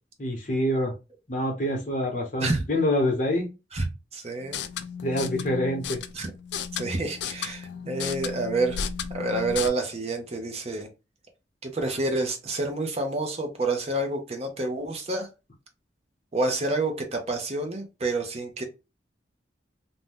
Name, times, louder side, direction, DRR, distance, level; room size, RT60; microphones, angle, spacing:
voice 1, 0.2-0.9 1.3-3.5 5.0-6.0, left 1 dB, 45° left, 0.9 m, -26 dB
voice 2, 4.1-4.6 6.1-6.3 6.8-8.8 9.1-10.9 11.6-15.3 16.3-18.6, right 2 dB, 35° right, 0.6 m, -28 dB
sound 1, 4.4-9.7, left 7 dB, 65° left, 0.3 m, -34 dB
2.6 x 2.2 x 3.3 m
head